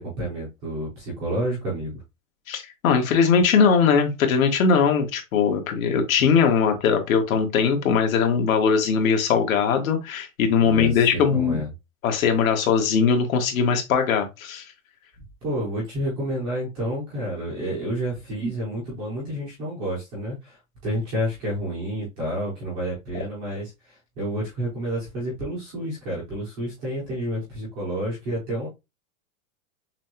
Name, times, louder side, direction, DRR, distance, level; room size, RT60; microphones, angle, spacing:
voice 1, 0.0-2.0 10.6-11.7 15.4-20.6 20.8-28.7, equal, 10° right, 0.4 m, -29 dB
voice 2, 2.5-11.6 12.0-14.6, left 6 dB, 80° left, 1.5 m, -20 dB
6.0 x 2.2 x 2.9 m
supercardioid pair, 175°, 40 cm